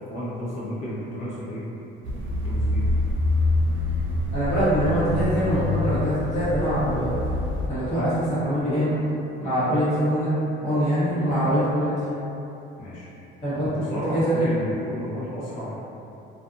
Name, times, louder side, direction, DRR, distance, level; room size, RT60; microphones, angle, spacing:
voice 1, 0.0-1.6 2.2-2.8 4.3-4.8 7.9-8.1 12.8-13.1 13.7-15.8, equal, 75° left, -9 dB, 0.9 m, -33 dB
sound 1, 2.0-7.7, left 2 dB, 70° right, 0.4 m, -25 dB
voice 2, 4.3-7.1 7.7-8.9 9.4-10.3 10.6-11.9 13.4-13.8 14.1-14.6, equal, 35° left, -13 dB, 1.0 m, -23 dB
2.5 x 2.5 x 2.4 m, 2.9 s
cardioid pair, 180°, 20 cm